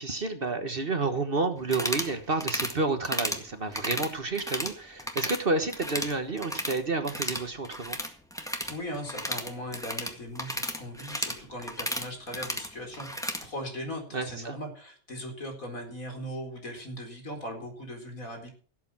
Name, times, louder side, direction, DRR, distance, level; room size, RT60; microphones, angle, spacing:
voice 1, 0.0-8.0 14.1-14.6, right 3 dB, 40° right, 8 dB, 1.5 m, -30 dB
sound 1, 1.6-2.1 2.4-2.7 3.0-3.4 3.7-4.7 5.0-5.4 5.7-6.8 7.0-13.4, equal, ahead, 1.8 m, -33 dB
voice 2, 8.6-18.5, equal, 70° left, 3 dB, 4.7 m, -39 dB
17.0 x 8.4 x 5.9 m, 0.41 s
omnidirectional pair, 1.5 m